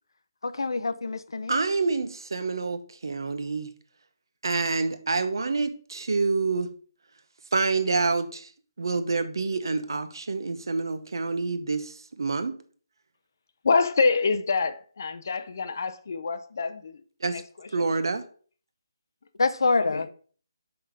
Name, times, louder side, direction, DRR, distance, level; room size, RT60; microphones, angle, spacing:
voice 1, 0.4-1.6 19.4-20.1, left 3 dB, 75° left, 0.7 m, -26 dB
voice 2, 1.5-3.7 4.4-6.7 7.5-8.5 8.8-12.6 17.2-17.4 17.7-18.2, right 4 dB, 65° right, 0.9 m, -27 dB
voice 3, 13.6-17.0 17.3-17.9 19.7-20.1, left 4 dB, 40° left, 0.6 m, -26 dB
5.6 x 4.9 x 5.1 m
hypercardioid pair, 175°, 2 cm